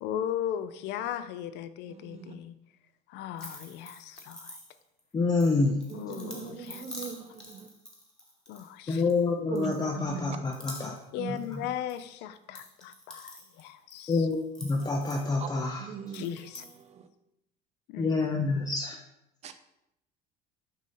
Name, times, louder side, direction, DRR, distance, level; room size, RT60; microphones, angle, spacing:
voice 1, 0.0-2.6 3.1-4.6 5.9-7.1 8.5-9.0 11.1-14.3 16.1-16.6 17.9-18.2, left 10 dB, 65° left, 12 dB, 0.5 m, -37 dB
voice 2, 1.9-2.4 5.9-7.7 9.5-10.4 11.2-11.4 15.4-15.5 15.8-16.4 16.8-17.1 19.4-19.5, right 6 dB, 35° right, 10 dB, 0.5 m, -39 dB
sound 1, 3.4-5.0 5.4-9.2 9.5-10.1 10.4-12.0 12.3-15.6 16.1-16.8, left 1 dB, 5° left, 1.2 m, -47 dB
voice 3, 5.1-5.7 8.9-11.0 11.5-11.6 14.1-15.9 18.0-19.0, left 3 dB, 20° left, 1 dB, 0.5 m, -27 dB
6.2 x 2.7 x 5.6 m, 0.84 s
cardioid pair, 125°, 19 cm